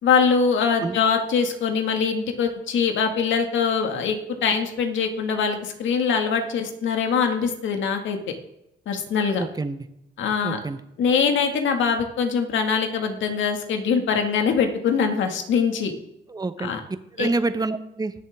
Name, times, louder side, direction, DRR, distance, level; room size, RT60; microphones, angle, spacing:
voice 1, 0.0-8.2 8.9-9.4 10.2-10.6 11.0-15.9 16.6-16.8 17.2-17.3, left 6 dB, 75° left, 5 dB, 2.0 m, -23 dB
voice 2, 9.4-9.8 10.4-10.8 16.3-16.7 17.2-18.1, right 3 dB, 20° right, 11 dB, 0.9 m, -27 dB
20.5 x 7.3 x 3.6 m, 0.79 s
cardioid pair, 90°, 20 cm